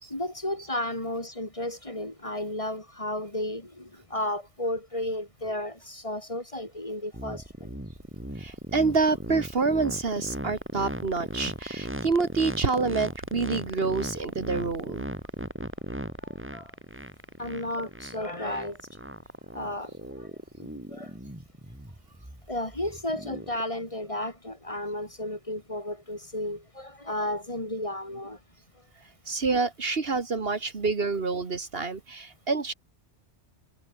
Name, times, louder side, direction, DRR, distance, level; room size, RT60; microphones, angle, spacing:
voice 1, 0.1-7.7 16.2-16.7 17.4-18.8 19.5-20.3 20.6-21.1 22.5-28.4, left 1 dB, 30° left, 3.4 m, -33 dB
sound 1, 7.1-23.6, right 1 dB, 10° right, 3.4 m, -37 dB
voice 2, 8.4-15.0 29.3-32.7, right 4 dB, 60° right, 1.8 m, -27 dB
omnidirectional pair, 1.2 m